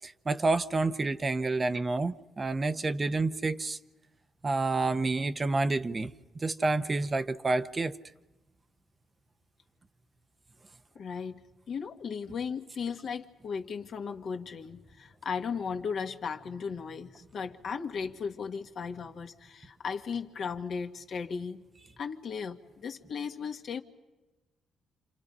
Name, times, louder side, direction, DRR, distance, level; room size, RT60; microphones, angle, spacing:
voice 1, 0.0-3.8 4.4-7.9, right 3 dB, 30° right, 0.8 m, -29 dB
voice 2, 11.0-21.6 22.0-23.8, left 6 dB, 60° left, 1.8 m, -36 dB
28.5 x 27.5 x 5.5 m
cardioid pair, 90°, 0 cm